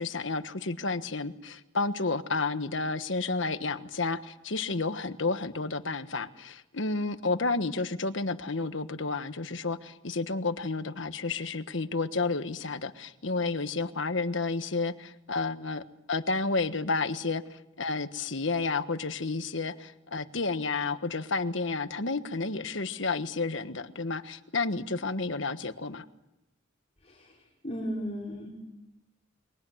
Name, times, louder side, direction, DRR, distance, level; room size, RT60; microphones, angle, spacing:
voice 1, 0.0-26.0, left 3 dB, 70° left, 10 dB, 1.3 m, -31 dB
voice 2, 27.0-28.5, equal, 35° left, -5 dB, 5.2 m, -36 dB
29.5 x 23.5 x 7.9 m, 0.95 s
head